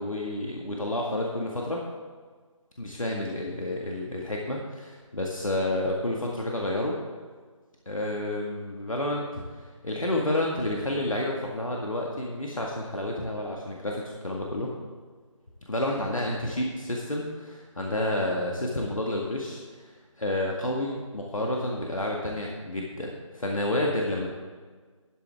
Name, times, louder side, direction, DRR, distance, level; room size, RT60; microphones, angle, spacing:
voice 1, 0.0-1.8 2.8-7.0 7.8-14.7 15.7-24.3, left 1 dB, 80° left, -1 dB, 1.8 m, -30 dB
12.5 x 11.0 x 3.5 m, 1.5 s
figure-of-eight pair, 155°, 17 cm